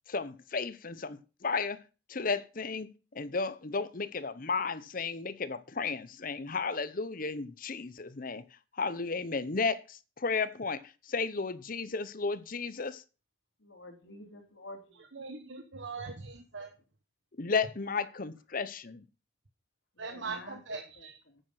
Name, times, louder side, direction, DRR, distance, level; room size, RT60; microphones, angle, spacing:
voice 1, 0.1-1.8 2.1-8.4 8.7-13.0 17.4-19.0, left 4 dB, 45° left, 0.8 m, -33 dB
voice 2, 13.6-15.0 20.0-20.6 21.0-21.4, left 1 dB, 75° left, 3.1 m, -49 dB
voice 3, 15.1-16.7 20.0-21.2, right 4 dB, 75° right, 1.4 m, -41 dB
9.5 x 9.1 x 5.9 m
head